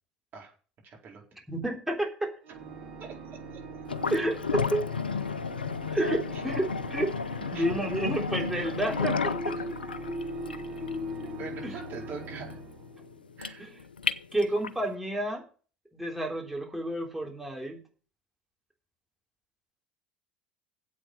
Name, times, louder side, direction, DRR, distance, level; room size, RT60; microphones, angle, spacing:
voice 1, 0.8-1.2 3.0-3.2 3.5-3.6 6.3-6.4 7.5-7.6 9.6-9.7 11.2-12.6 13.4-13.6, right 5 dB, 45° right, 0 dB, 4.5 m, -43 dB
voice 2, 1.5-2.3 4.1-4.8 5.9-7.2 7.5-9.3 11.6-11.8 13.6-13.7 14.3-15.4 15.9-17.8, right 1 dB, 5° right, 0 dB, 3.6 m, -30 dB
Organ, 2.4-13.4, right 3 dB, 70° right, 2.6 m, -44 dB
sound 1, 3.9-14.9, left 5 dB, 90° left, 0.5 m, -33 dB
sound 2, 9.3-13.0, left 2 dB, 40° left, 2.6 m, -38 dB
8.2 x 7.3 x 7.9 m, 0.38 s
figure-of-eight pair, 70°, 5 cm